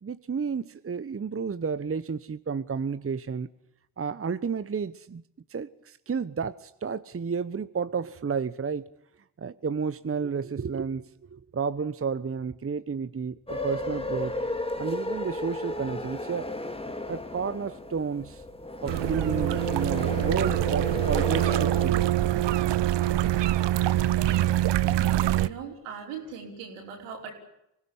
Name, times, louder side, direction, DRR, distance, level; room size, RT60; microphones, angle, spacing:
voice 1, 0.0-3.5 4.0-5.2 5.5-8.9 9.4-14.3 14.8-16.5 17.1-18.4 18.8-22.1, right 5 dB, 25° right, 14 dB, 1.1 m, -31 dB
sound 1, 13.5-21.9, left 2 dB, 10° left, 2.6 m, -34 dB
sound 2, 18.9-25.5, right 13 dB, 55° right, 1.0 m, -24 dB
voice 2, 25.3-27.3, right 6 dB, 80° right, 2 dB, 5.3 m, -39 dB
25.0 x 17.0 x 9.9 m, 0.80 s
hypercardioid pair, 40°, 50 cm